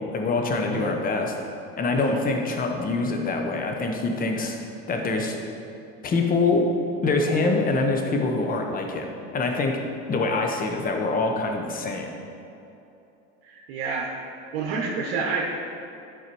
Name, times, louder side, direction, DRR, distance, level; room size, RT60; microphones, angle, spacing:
voice 1, 0.0-1.3 1.8-5.4 6.0-6.6 7.0-9.8 10.1-12.1, left 3 dB, 25° left, 2 dB, 1.1 m, -25 dB
voice 2, 13.5-14.2 14.5-15.5, right 4 dB, 75° right, -2 dB, 1.2 m, -29 dB
11.5 x 4.7 x 4.6 m, 2.8 s
supercardioid pair, 120°, 31 cm